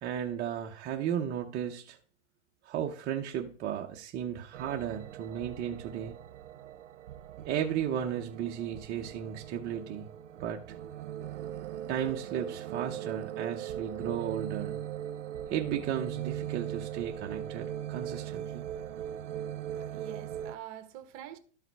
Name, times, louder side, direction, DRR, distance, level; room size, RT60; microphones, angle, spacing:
voice 1, 0.0-2.0 2.6-6.2 7.4-10.1 10.4-10.8 11.9-14.8 15.5-18.6, right 9 dB, 25° right, 0.8 m, -34 dB
Session Three, 4.5-20.5, right 10 dB, 85° right, 0.7 m, -39 dB
voice 2, 19.8-21.4, right 12 dB, 45° right, 1.2 m, -45 dB
12.5 x 5.7 x 4.6 m
hypercardioid pair, 140°, 35 cm